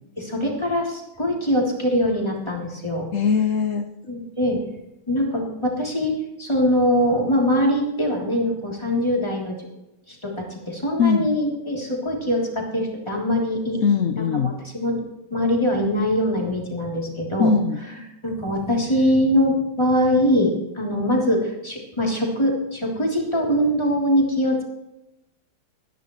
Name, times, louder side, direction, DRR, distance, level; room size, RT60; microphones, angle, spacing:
voice 1, 0.2-3.1 4.1-4.6 5.1-9.5 10.1-13.8 14.2-15.0 15.3-17.5 18.2-24.6, equal, 15° left, -2 dB, 3.4 m, -22 dB
voice 2, 3.1-3.9 11.0-11.3 13.8-14.6 17.4-17.8, left 5 dB, 55° left, 5 dB, 0.9 m, -20 dB
21.0 x 10.5 x 3.2 m, 0.91 s
omnidirectional pair, 2.1 m